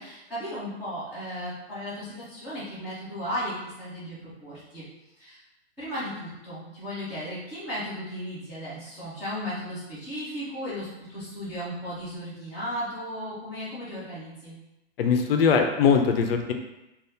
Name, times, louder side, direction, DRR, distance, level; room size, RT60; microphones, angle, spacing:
voice 1, 0.0-4.9 5.2-5.4 5.8-14.6, equal, 5° right, -14 dB, 0.4 m, -35 dB
voice 2, 15.0-16.5, left 6 dB, 60° left, 5 dB, 0.5 m, -21 dB
2.7 x 2.3 x 3.4 m, 0.95 s
hypercardioid pair, 175°, 33 cm